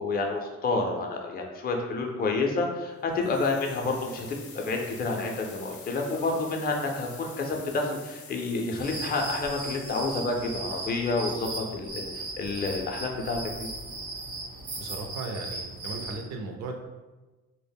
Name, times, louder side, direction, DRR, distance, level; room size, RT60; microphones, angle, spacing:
voice 1, 0.0-4.3 4.5-13.7, left 3 dB, 30° left, 2 dB, 0.4 m, -29 dB
sound 1, 3.1-12.0, left 5 dB, 80° left, 0.5 m, -48 dB
sound 2, 8.8-16.2, right 2 dB, 85° right, 0.9 m, -37 dB
voice 2, 14.8-16.8, right 3 dB, 65° right, 3 dB, 0.5 m, -36 dB
2.1 x 2.0 x 3.4 m, 1.2 s
cardioid pair, 90°, 30 cm